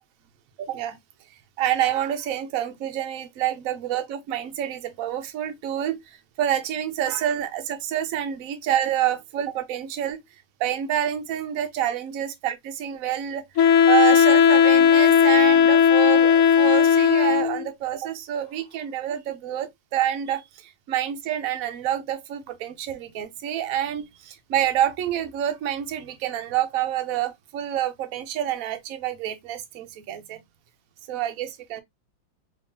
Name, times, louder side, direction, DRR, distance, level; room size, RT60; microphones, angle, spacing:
voice 1, 0.6-1.0 1.6-10.2 10.6-30.4 31.1-31.8, right 11 dB, 70° right, 0.8 m, -27 dB
Wind instrument woodwind instrument, 13.6-17.7, left 7 dB, 70° left, 0.8 m, -16 dB
3.5 x 3.2 x 2.7 m
omnidirectional pair, 2.2 m